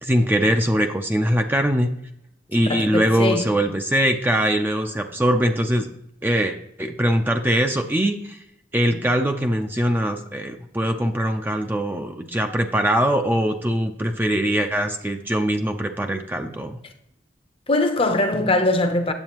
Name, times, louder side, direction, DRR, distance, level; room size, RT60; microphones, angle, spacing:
voice 1, 0.0-1.9 2.5-5.9 6.2-8.4 8.7-16.8, equal, 10° right, 0.5 m, -22 dB
voice 2, 2.7-3.5 17.7-19.1, left 2 dB, 30° left, 0.7 m, -21 dB
8.8 x 7.4 x 3.0 m
head